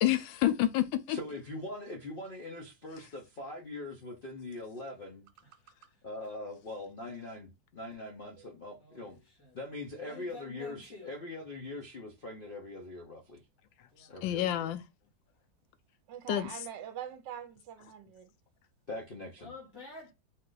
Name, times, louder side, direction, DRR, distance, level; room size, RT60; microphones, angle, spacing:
voice 1, 0.0-1.2 14.2-14.8 16.3-16.5, left 13 dB, 85° left, 1.3 m, -28 dB
voice 2, 1.1-5.3 6.0-9.2 9.5-13.4 14.1-14.5 18.9-19.5, left 2 dB, 70° left, 0.5 m, -42 dB
voice 3, 5.4-6.3 8.8-9.6 10.0-11.2 13.9-14.1 19.4-20.1, left 3 dB, 15° left, 0.9 m, -51 dB
voice 4, 16.1-18.3, right 9 dB, 75° right, 1.3 m, -43 dB
4.3 x 2.4 x 3.8 m
omnidirectional pair, 2.0 m